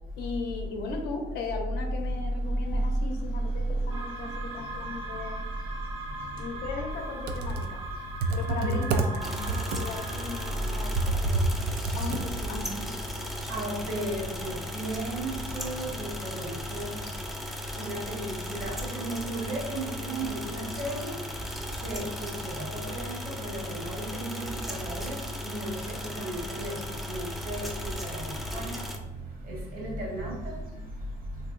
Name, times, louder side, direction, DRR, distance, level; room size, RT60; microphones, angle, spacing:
voice 1, 0.2-5.4 6.4-7.8 8.3-11.4 11.9-13.0, left 4 dB, 80° left, 3 dB, 0.6 m, -37 dB
sound 1, 3.9-11.6, right 2 dB, 35° right, 0.7 m, -40 dB
Computer keyboard, 7.1-12.7, right 3 dB, 75° right, 0.4 m, -29 dB
sound 2, 9.2-29.0, left 1 dB, ahead, 0.3 m, -36 dB
voice 2, 13.5-16.9 17.8-21.1 21.8-22.3 22.6-25.2 25.4-25.7 26.0-26.7 27.1-27.6 28.1-28.2 28.5-28.8 29.7-30.3, right 1 dB, 55° right, -2 dB, 1.1 m, -35 dB
3.3 x 2.7 x 2.5 m, 1.0 s
cardioid pair, 110°, 17 cm